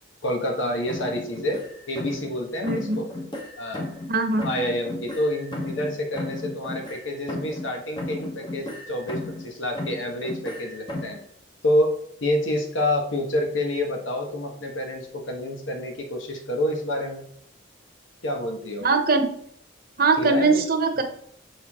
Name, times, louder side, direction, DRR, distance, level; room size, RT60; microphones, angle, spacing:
voice 1, 0.2-3.1 3.6-3.9 4.4-11.2 11.6-11.9 12.2-17.2 18.2-18.8 20.2-20.6 21.0-21.1, left 1 dB, 85° left, 2 dB, 1.4 m, -28 dB
sound 1, 0.9-2.4 2.6-4.1 4.4-7.7 8.0-9.5 9.7-11.2, left 1 dB, 25° left, 1.1 m, -35 dB
voice 2, 2.6-3.0 4.1-4.5 18.8-19.3 20.0-21.0, right 3 dB, 50° right, 5 dB, 1.0 m, -21 dB
7.0 x 4.7 x 3.6 m, 0.67 s
head